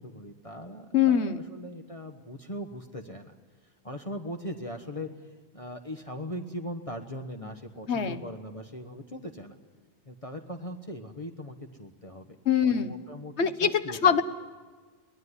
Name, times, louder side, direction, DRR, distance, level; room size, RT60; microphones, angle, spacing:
voice 1, 0.0-3.3 3.8-5.1 5.5-9.6 10.1-12.3 12.6-14.1, equal, 30° left, 4 dB, 1.3 m, -40 dB
voice 2, 0.9-1.4 7.9-8.2 12.4-12.9 13.4-14.2, left 7 dB, 70° left, 11 dB, 1.4 m, -23 dB
24.0 x 18.5 x 9.8 m, 1.5 s
omnidirectional pair, 1.2 m